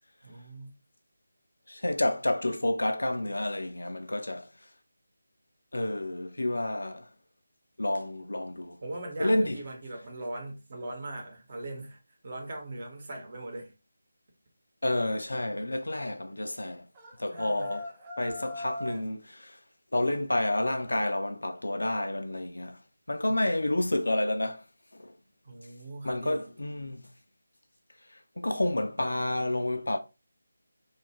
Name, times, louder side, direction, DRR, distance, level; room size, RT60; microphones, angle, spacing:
voice 1, 0.2-0.7 8.8-12.0 12.2-13.7 17.3-17.8 23.2-23.3 25.4-26.5, right 2 dB, 35° right, 1.0 m, -40 dB
voice 2, 1.7-4.5 5.7-7.1 7.8-8.8 9.2-9.6 14.8-16.9 17.2-17.9 18.2-19.6 19.9-22.8 23.1-24.6 24.9-25.1 26.0-27.1 28.1-30.0, left 1 dB, 70° left, 0.4 m, -29 dB
sound 1, 16.9-19.1, left 1 dB, 20° right, 0.4 m, -40 dB
2.8 x 2.4 x 3.0 m
figure-of-eight pair, 160°, 0 cm